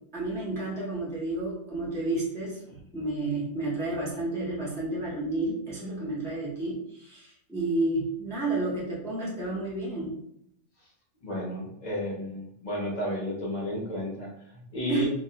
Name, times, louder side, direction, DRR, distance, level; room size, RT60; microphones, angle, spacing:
voice 1, 0.1-10.2 14.9-15.1, right 2 dB, 5° left, -5 dB, 0.3 m, -31 dB
voice 2, 11.2-15.1, left 1 dB, 45° left, -3 dB, 0.6 m, -32 dB
2.3 x 2.0 x 2.7 m, 0.73 s
omnidirectional pair, 1.4 m